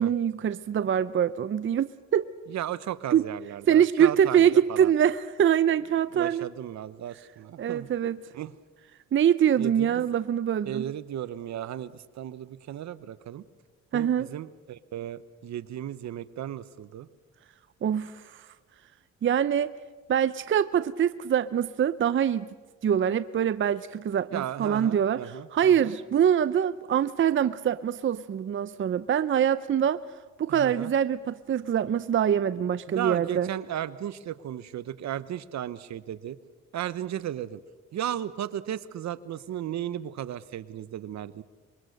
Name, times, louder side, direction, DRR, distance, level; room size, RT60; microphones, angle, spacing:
voice 1, 0.0-2.3 3.1-3.2 3.7-6.5 7.6-8.2 9.1-10.8 13.9-14.3 17.8-18.5 19.2-19.7 20.1-22.5 22.8-30.0 30.4-33.5, right 9 dB, 40° right, 14 dB, 0.6 m, -24 dB
voice 2, 2.5-4.9 6.1-7.9 8.3-8.5 9.6-10.0 10.6-13.4 13.9-17.1 24.3-25.9 30.5-30.9 32.9-36.4 36.7-37.6 37.9-41.4, right 11 dB, 65° right, 15 dB, 0.9 m, -35 dB
25.5 x 22.5 x 6.6 m, 1.4 s
cardioid pair, 90°, 30 cm